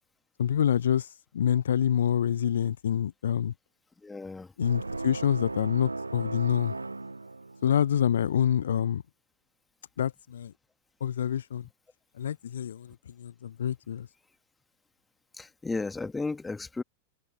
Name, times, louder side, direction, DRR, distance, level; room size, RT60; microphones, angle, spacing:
voice 1, 0.4-1.1 1.3-3.5 4.6-6.7 7.6-9.0 10.0-10.5 11.0-11.7 12.2-14.1, left 9 dB, 65° left, 0.4 m, -27 dB
voice 2, 4.0-4.5 15.3-16.8, left 3 dB, 10° left, 1.8 m, -34 dB
sound 1, 4.6-7.9, right 3 dB, 80° right, 1.7 m, -36 dB
figure-of-eight pair, 90°, 0 cm